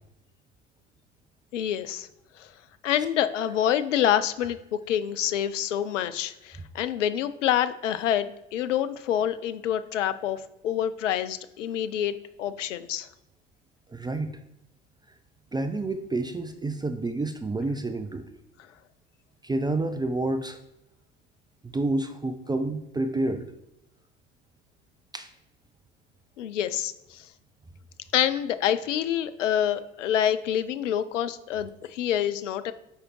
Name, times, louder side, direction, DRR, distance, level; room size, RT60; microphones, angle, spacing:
voice 1, 1.5-2.1 2.4-2.5 2.8-13.1 26.4-27.3 28.1-32.7, left 10 dB, 75° left, 13 dB, 0.6 m, -27 dB
voice 2, 13.9-14.4 15.5-18.3 19.4-20.6 21.6-23.5 25.1-25.3, right 2 dB, 10° right, 8 dB, 0.5 m, -29 dB
7.3 x 4.9 x 4.6 m, 0.85 s
figure-of-eight pair, 70°, 37 cm